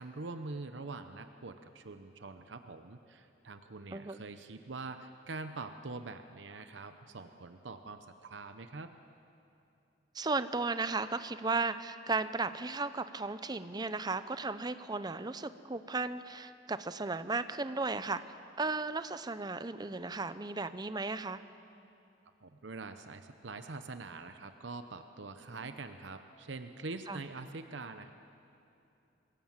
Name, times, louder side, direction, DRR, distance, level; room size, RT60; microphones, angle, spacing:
voice 1, 0.0-8.9 22.4-28.1, right 3 dB, 80° right, 8 dB, 0.8 m, -44 dB
voice 2, 3.9-4.2 10.1-18.2 18.6-21.4 25.5-25.6 27.1-27.2, right 3 dB, 20° right, 12 dB, 0.6 m, -35 dB
25.5 x 17.0 x 7.4 m, 2.8 s
head